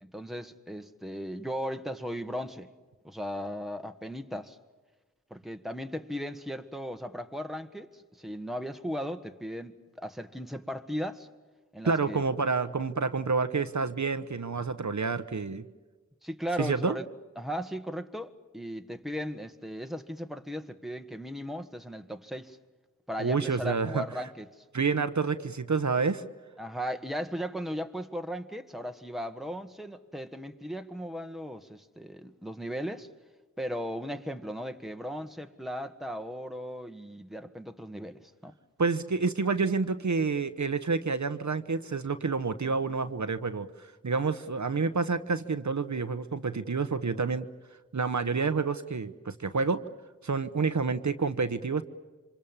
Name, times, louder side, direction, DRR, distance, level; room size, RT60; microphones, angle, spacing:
voice 1, 0.0-2.7 3.0-4.6 5.3-11.3 11.7-12.2 16.2-17.1 17.4-22.6 23.1-24.6 26.6-33.1 33.6-38.5, equal, ahead, 1.5 m, -37 dB
voice 2, 11.8-15.6 16.6-17.0 23.2-24.0 24.7-26.2 38.8-47.5 47.9-49.8 50.2-51.8, right 4 dB, 65° right, 1.0 m, -28 dB
27.5 x 25.0 x 7.3 m
wide cardioid pair, 45°, 31 cm